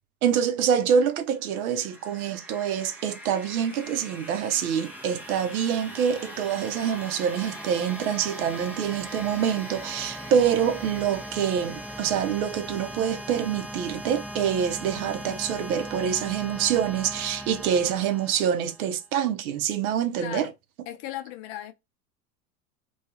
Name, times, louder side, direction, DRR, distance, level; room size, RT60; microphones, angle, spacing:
voice 1, 0.2-20.5, right 8 dB, 65° right, 0.6 m, -26 dB
sound 1, 1.4-19.0, right 1 dB, 5° right, 0.4 m, -39 dB
voice 2, 20.2-20.5 20.9-21.7, left 13 dB, 45° left, 0.6 m, -36 dB
2.3 x 2.3 x 2.6 m
hypercardioid pair, 85°, 45 cm